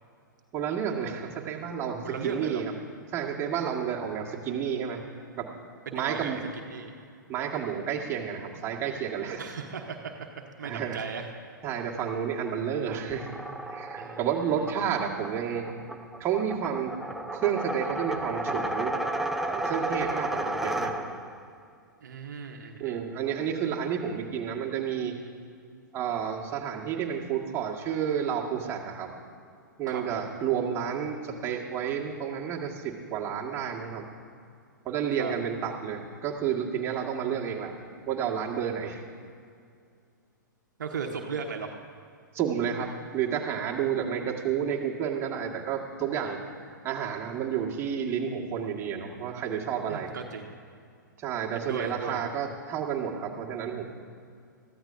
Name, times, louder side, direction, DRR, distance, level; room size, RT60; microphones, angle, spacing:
voice 1, 0.5-2.7 3.1-5.0 5.4-5.5 5.9-6.4 7.3-9.4 10.6-11.1 11.6-13.3 13.7-15.7 16.2-17.0 17.3-18.9 19.4-21.0 22.8-25.2 25.9-29.1 29.8-34.1 34.8-37.7 38.1-39.0 42.3-46.4 46.8-50.1 51.2-53.8, right 8 dB, 25° right, -2 dB, 1.7 m, -30 dB
voice 2, 2.0-2.6 5.9-6.4 6.7-6.9 9.4-10.1 10.6-11.3 14.0-14.7 22.0-23.0 29.9-30.3 35.2-35.3 40.8-41.7 49.9-50.5 51.5-52.3, right 5 dB, 65° right, 3 dB, 1.1 m, -36 dB
sound 1, 13.1-21.4, right 1 dB, ahead, 0.6 m, -33 dB
22.0 x 14.5 x 2.7 m, 2.3 s
figure-of-eight pair, 110°, 11 cm